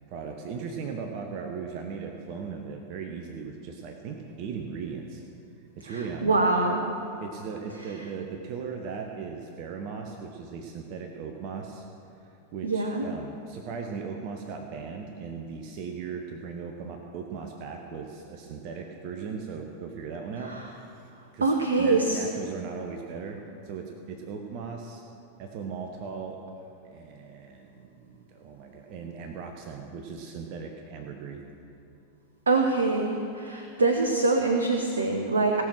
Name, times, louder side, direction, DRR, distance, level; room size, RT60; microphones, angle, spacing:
voice 1, 0.1-5.2 5.8-6.4 7.2-11.8 12.2-20.5 20.9-23.4 23.6-25.0 25.4-26.4 26.8-31.4, right 5 dB, 45° right, 3 dB, 0.9 m, -38 dB
voice 2, 5.9-6.9 12.6-13.0 20.5-20.6 21.4-22.2 32.5-35.6, right 3 dB, 75° right, 3 dB, 0.9 m, -24 dB
18.0 x 6.2 x 6.3 m, 2.7 s
figure-of-eight pair, 90°, 0 cm